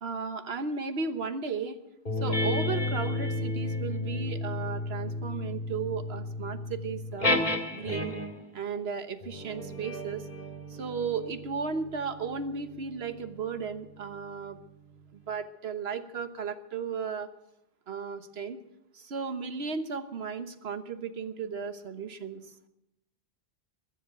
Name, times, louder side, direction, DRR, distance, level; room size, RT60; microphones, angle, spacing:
voice 1, 0.0-1.8 2.2-7.3 7.7-8.2 8.5-10.3 10.7-14.6 15.1-17.3 17.9-18.6 18.9-22.5, right 5 dB, 80° right, 10 dB, 1.4 m, -35 dB
sound 1, 2.1-8.5 9.2-14.1, left 2 dB, 55° left, 2.4 m, -33 dB
21.0 x 7.4 x 9.1 m, 0.86 s
omnidirectional pair, 1.0 m